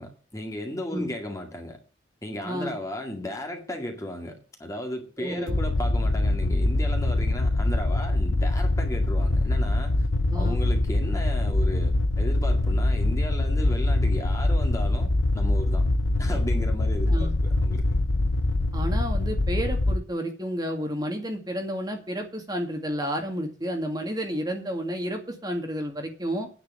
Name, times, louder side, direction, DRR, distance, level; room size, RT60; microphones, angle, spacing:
voice 1, 0.0-1.8 2.2-10.1 10.3-15.8 16.2-17.8, left 1 dB, 15° left, 2.0 m, -35 dB
voice 2, 2.4-2.7 5.2-5.6 10.3-10.6 17.1-17.3 18.7-26.5, equal, 20° right, 2.1 m, -31 dB
sound 1, 5.5-20.0, left 2 dB, 90° left, 0.9 m, -24 dB
9.8 x 6.7 x 8.3 m
head